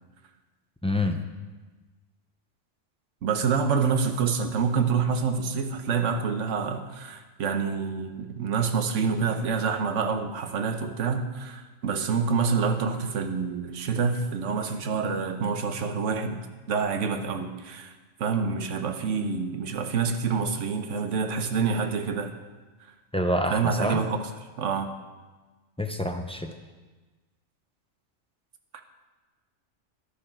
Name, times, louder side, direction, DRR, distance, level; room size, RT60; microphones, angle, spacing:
voice 1, 0.8-1.2 23.1-24.0 25.8-26.5, left 1 dB, 10° left, 5 dB, 0.3 m, -27 dB
voice 2, 3.2-16.4 16.7-17.9 18.2-22.3 23.5-24.2 24.6-24.9 28.7-28.8, right 5 dB, 80° right, 7 dB, 1.2 m, -27 dB
11.0 x 10.0 x 4.5 m, 1.3 s
omnidirectional pair, 1.3 m